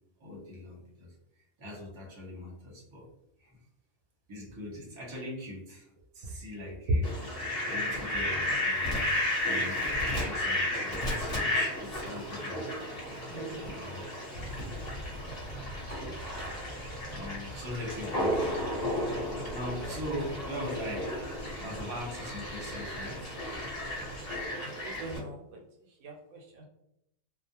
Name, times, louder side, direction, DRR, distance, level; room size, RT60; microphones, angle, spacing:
voice 1, 0.2-3.1 3.4-3.6 4.3-7.3 7.7-8.9 9.4-12.6 13.5-14.1 16.0-16.2 17.1-18.6 19.0-21.2 21.6-23.4, left 1 dB, 25° right, -4 dB, 0.8 m, -41 dB
Fowl, 7.0-25.2, left 1 dB, 35° left, 1.0 m, -33 dB
voice 2, 13.3-13.7 24.6-25.5 26.0-26.6, right 2 dB, 75° right, 0 dB, 0.9 m, -44 dB
sound 1, 14.3-24.5, equal, 80° left, 1.0 m, -45 dB
2.4 x 2.0 x 2.8 m, 0.80 s
omnidirectional pair, 1.3 m